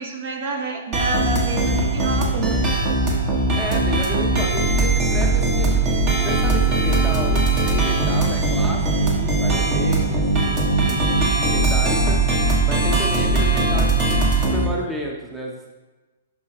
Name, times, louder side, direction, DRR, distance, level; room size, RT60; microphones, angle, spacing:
voice 1, 0.0-2.6, right 2 dB, 50° right, 3 dB, 1.1 m, -28 dB
sound 1, 0.9-14.7, right 2 dB, 35° right, 1.5 m, -20 dB
voice 2, 3.5-5.9 6.2-10.6 10.9-12.2 12.6-15.7, right 1 dB, 10° right, 0 dB, 0.9 m, -32 dB
12.0 x 5.1 x 3.0 m, 1.2 s
figure-of-eight pair, 115°, 0 cm